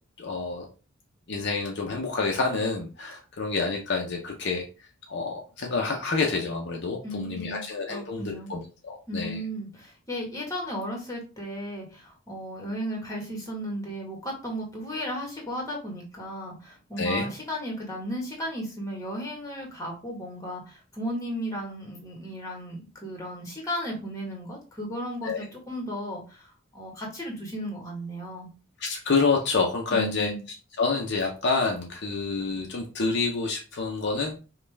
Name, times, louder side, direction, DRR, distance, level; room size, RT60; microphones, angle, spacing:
voice 1, 0.2-0.7 1.3-9.4 17.0-17.3 25.2-25.4 28.8-30.3 30.8-34.4, left 4 dB, 55° left, 0 dB, 0.7 m, -28 dB
voice 2, 7.0-8.5 9.1-28.5 29.9-30.4, equal, 15° left, 0 dB, 1.3 m, -35 dB
5.3 x 2.4 x 3.3 m, 0.34 s
head